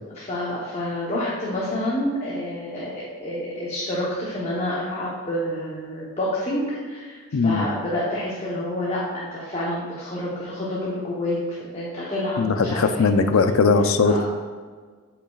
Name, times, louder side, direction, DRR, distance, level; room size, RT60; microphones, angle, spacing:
voice 1, 0.1-13.0 14.0-14.3, left 1 dB, 30° left, -6 dB, 1.0 m, -28 dB
voice 2, 7.3-7.7 12.4-14.3, left 4 dB, 80° left, 8 dB, 0.5 m, -19 dB
8.7 x 5.6 x 2.4 m, 1.5 s
head